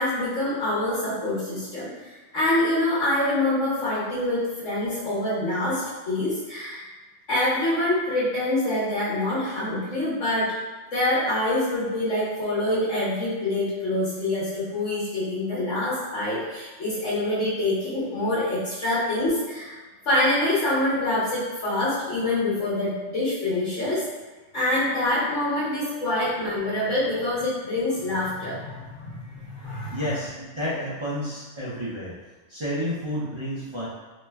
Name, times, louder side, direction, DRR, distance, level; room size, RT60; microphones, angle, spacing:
voice 1, 0.0-1.9 2.3-6.8 7.3-10.5 10.9-19.8 20.0-24.1 24.5-30.1, left 1 dB, 90° left, -11 dB, 1.3 m, -25 dB
voice 2, 29.9-32.1 32.5-33.9, equal, 40° right, -8 dB, 0.4 m, -30 dB
3.0 x 2.1 x 3.3 m, 1.3 s
omnidirectional pair, 1.2 m